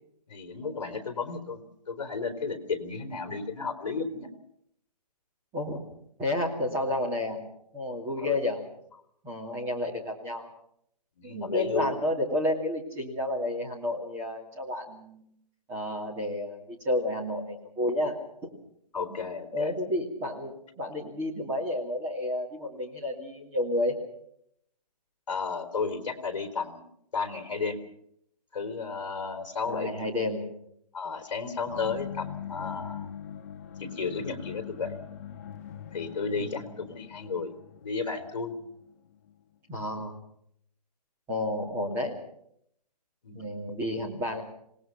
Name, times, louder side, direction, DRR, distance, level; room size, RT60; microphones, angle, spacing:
voice 1, 0.3-4.3 8.2-8.4 11.2-12.0 18.9-19.7 25.3-26.9 27.1-27.8 28.5-30.0 30.9-33.1 33.8-35.0 35.9-37.5 37.8-38.6 43.2-43.5, left 4 dB, 50° left, 6 dB, 3.8 m, -33 dB
voice 2, 5.5-5.8 6.2-7.4 7.7-8.6 9.2-10.5 11.2-15.2 15.7-18.2 18.4-18.5 19.1-19.2 19.5-24.0 29.7-30.4 31.7-31.9 36.4-36.7 39.7-40.2 41.3-42.2 43.3-44.4, left 1 dB, 10° right, 0 dB, 2.5 m, -31 dB
sound 1, 31.7-39.4, left 9 dB, 20° left, 0.8 m, -42 dB
26.5 x 19.5 x 5.9 m, 0.71 s
hypercardioid pair, 175°, 21 cm